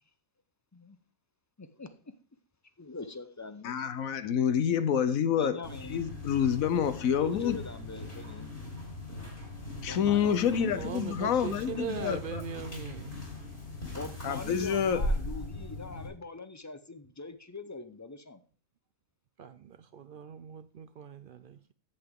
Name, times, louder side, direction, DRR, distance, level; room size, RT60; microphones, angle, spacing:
voice 1, 1.6-2.1 2.8-3.9 5.3-6.1 6.9-8.5 9.9-12.0 13.9-18.4, left 3 dB, 25° left, 0.4 m, -43 dB
voice 2, 3.6-5.6 5.9-7.6 9.8-12.4 14.2-15.0, left 8 dB, 90° left, 1.2 m, -28 dB
sound 1, 5.6-16.1, left 1 dB, 50° left, 4.4 m, -39 dB
voice 3, 10.8-13.1 19.4-21.7, right 7 dB, 65° right, 0.5 m, -40 dB
10.5 x 8.0 x 3.6 m
omnidirectional pair, 1.4 m